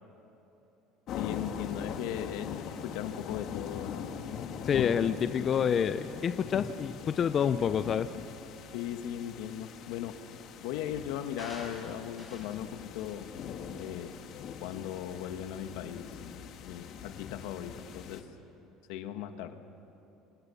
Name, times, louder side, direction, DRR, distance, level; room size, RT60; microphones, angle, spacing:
voice 1, 1.1-4.0 8.7-10.2 10.6-13.3 13.7-14.2 14.6-16.1 16.6-18.2 18.9-19.6, left 10 dB, 80° left, 8 dB, 1.6 m, -38 dB
sound 1, 1.1-18.2, left 7 dB, 55° left, 1.9 m, -42 dB
voice 2, 4.6-8.1, left 8 dB, 35° left, 11 dB, 0.6 m, -28 dB
sound 2, 11.4-12.6 13.0-13.3 13.8-13.9, left 1 dB, 5° right, 7.4 m, -48 dB
29.5 x 26.5 x 7.1 m, 3.0 s
cardioid pair, 140°, 0 cm